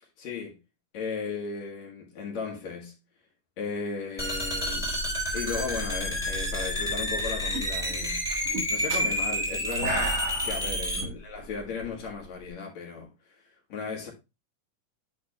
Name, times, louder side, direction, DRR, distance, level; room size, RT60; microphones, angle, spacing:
voice 1, 0.2-0.6 0.9-2.9 3.6-4.9 5.3-13.1 13.4-13.5 13.7-14.1, left 5 dB, 60° left, 2.9 m, -36 dB
sound 1, 4.2-11.0, equal, ahead, 2.7 m, -29 dB
sound 2, 6.9-7.2 7.5-12.5, right 2 dB, 70° right, 3.3 m, -35 dB
11.0 x 3.7 x 3.0 m
omnidirectional pair, 3.8 m